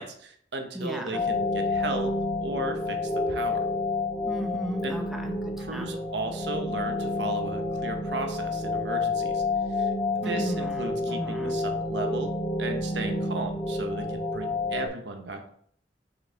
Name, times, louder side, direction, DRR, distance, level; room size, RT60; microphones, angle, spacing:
voice 1, 0.0-2.1 2.4-3.6 4.8-5.0 5.6-9.4 9.7-9.9 10.2-12.3 12.6-15.5, right 2 dB, 75° right, 4 dB, 1.0 m, -35 dB
voice 2, 0.7-1.2 4.2-5.9 10.2-11.6, equal, ahead, 2 dB, 0.6 m, -35 dB
sound 1, 1.1-14.9, left 2 dB, 40° left, 1.6 m, -29 dB
6.4 x 4.9 x 3.5 m, 0.63 s
head